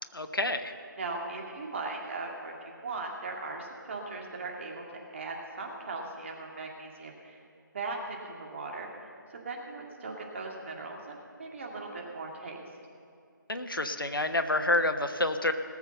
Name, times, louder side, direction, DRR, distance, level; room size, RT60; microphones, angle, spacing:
voice 1, 0.1-0.7 13.5-15.5, left 2 dB, 85° left, 8 dB, 1.1 m, -28 dB
voice 2, 1.0-4.8 5.1-7.4 7.7-8.9 9.4-12.6, right 3 dB, 35° right, 0 dB, 2.0 m, -38 dB
19.0 x 7.2 x 6.8 m, 2.4 s
figure-of-eight pair, 160°, 11 cm